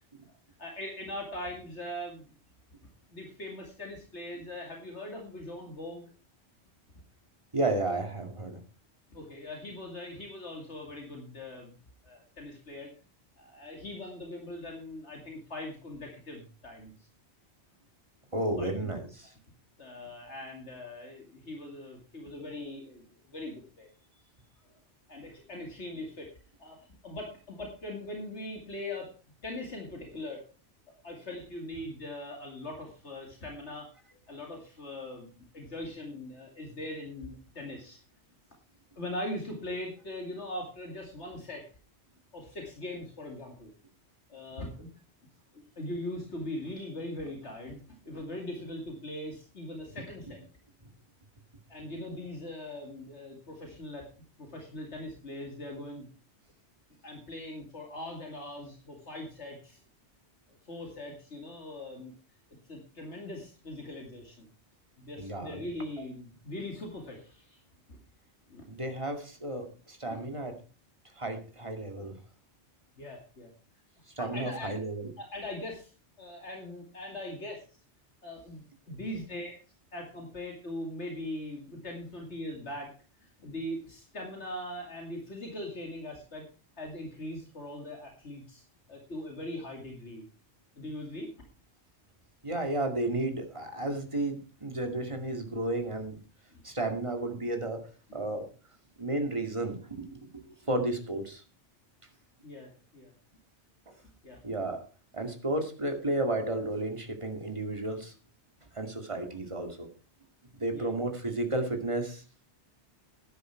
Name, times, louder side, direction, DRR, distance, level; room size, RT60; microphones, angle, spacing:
voice 1, 0.6-2.3 3.1-6.1 9.1-11.7 12.0-12.9 13.4-16.9 18.6-18.9 19.8-23.9 25.1-26.3 26.6-29.1 29.4-30.4 31.0-33.9 34.3-38.0 39.0-41.7 42.3-43.7 44.3-44.9 45.5-50.4 51.7-54.1 54.4-56.1 57.0-59.8 60.6-62.1 62.7-64.5 65.0-67.6 67.9-68.0 68.5-68.6 70.1-70.2 73.0-73.5 74.2-74.8 75.2-75.9 76.2-77.6 78.2-79.6 79.9-82.9 83.2-86.5 86.8-88.6 88.9-90.2 90.8-91.3 96.5-96.6 102.4-103.1 104.2-104.4 110.7-110.9, left 1 dB, 75° left, 1 dB, 2.8 m, -41 dB
voice 2, 7.5-8.6 18.3-19.3 65.2-65.6 68.7-70.5 71.2-72.2 74.2-75.1 92.4-96.2 96.6-97.9 98.1-98.5 99.0-101.4 104.4-104.8 105.1-108.1 108.7-109.9 110.6-112.2, right 2 dB, 25° right, 4 dB, 2.3 m, -32 dB
12.5 x 10.5 x 4.5 m, 0.35 s
omnidirectional pair, 1.2 m